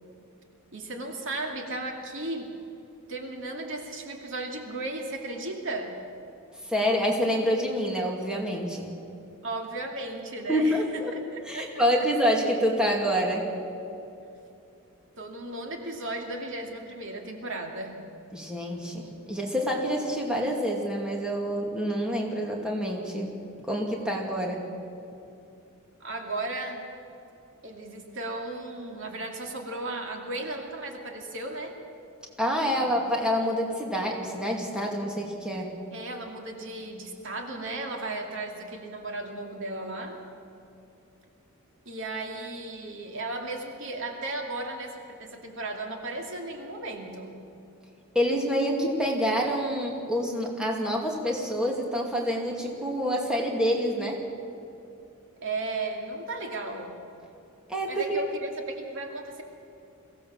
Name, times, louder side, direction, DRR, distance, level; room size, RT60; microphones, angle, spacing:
voice 1, 0.7-2.5 3.1-6.0 9.4-12.1 15.2-18.1 26.0-26.8 27.6-31.8 32.8-32.9 35.9-40.2 41.9-47.4 55.4-57.0 57.9-59.4, right 2 dB, 60° right, 2 dB, 2.5 m, -35 dB
voice 2, 6.6-8.9 10.5-11.1 11.5-13.5 18.3-23.4 23.6-24.6 32.4-35.7 48.1-54.2 57.7-58.2, equal, 5° right, -1 dB, 2.5 m, -27 dB
23.0 x 16.5 x 7.4 m, 2.8 s
head